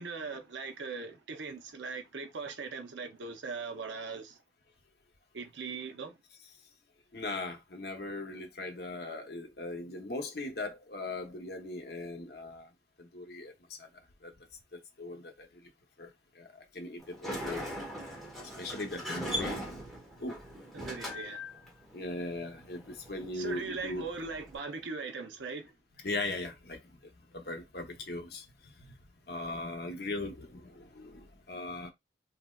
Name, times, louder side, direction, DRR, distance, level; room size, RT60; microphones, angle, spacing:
voice 1, 0.0-4.4 5.3-6.2 20.7-21.6 23.3-25.7, right 4 dB, 85° right, 0.6 m, -40 dB
voice 2, 7.1-12.7 13.0-13.5 13.8-13.9 14.2-14.3 14.7-15.5 16.0-16.1 16.4-17.7 18.6-19.6 20.2-20.4 21.9-24.1 26.0-26.8 27.3-28.9 29.3-31.9, left 2 dB, 60° left, 0.7 m, -39 dB
Sliding door, 17.0-24.6, equal, ahead, 0.9 m, -41 dB
3.4 x 2.7 x 2.2 m
head